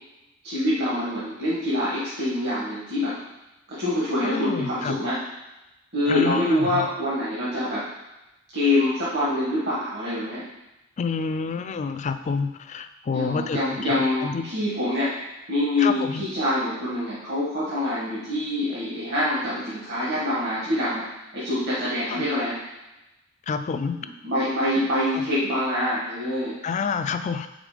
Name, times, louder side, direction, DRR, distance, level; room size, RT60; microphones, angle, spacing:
voice 1, 0.4-3.2 3.7-5.2 5.9-7.8 8.5-10.4 13.1-15.1 15.5-21.0 21.3-22.6 24.2-26.6, left 1 dB, 55° right, -9 dB, 1.5 m, -25 dB
voice 2, 4.2-5.0 6.1-6.9 11.0-14.5 15.8-16.2 22.1-22.3 23.5-24.0 26.6-27.5, left 5 dB, 35° left, 10 dB, 0.3 m, -28 dB
5.2 x 3.7 x 4.9 m, 0.99 s
head